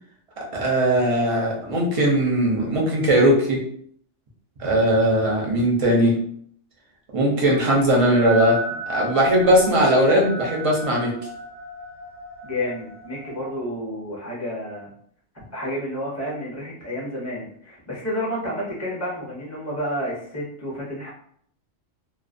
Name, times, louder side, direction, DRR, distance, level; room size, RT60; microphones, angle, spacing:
voice 1, 0.5-3.6 4.6-6.2 7.1-8.6 8.9-11.1, right 1 dB, 40° right, -2 dB, 0.5 m, -19 dB
sound 1, 8.2-13.6, right 1 dB, 85° right, 1.0 m, -35 dB
voice 2, 12.4-14.9 15.5-21.1, equal, 15° left, -5 dB, 0.7 m, -30 dB
2.4 x 2.1 x 2.5 m, 0.64 s
omnidirectional pair, 1.2 m